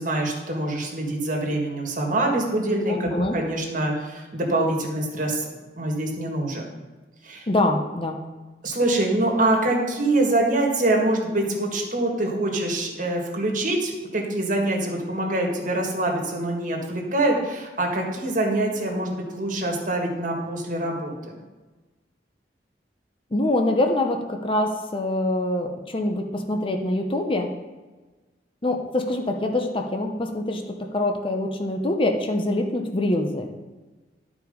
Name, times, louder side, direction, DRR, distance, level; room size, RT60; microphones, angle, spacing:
voice 1, 0.0-5.5 5.8-6.7 7.2-7.5 8.6-21.1, right 1 dB, 50° right, 0 dB, 1.7 m, -25 dB
voice 2, 2.9-3.4 7.5-8.2 23.3-27.5 28.6-33.5, left 1 dB, 30° left, 3 dB, 0.7 m, -24 dB
11.5 x 4.8 x 5.2 m, 1.2 s
head